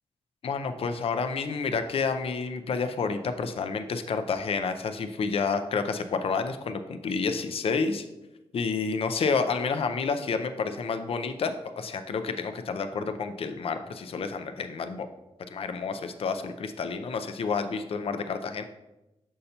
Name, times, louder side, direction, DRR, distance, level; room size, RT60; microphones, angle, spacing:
voice 1, 0.4-8.1 8.5-15.1 15.5-18.6, left 5 dB, 60° left, 8 dB, 0.5 m, -29 dB
6.6 x 5.5 x 2.8 m, 0.96 s
wide cardioid pair, 110°, 11 cm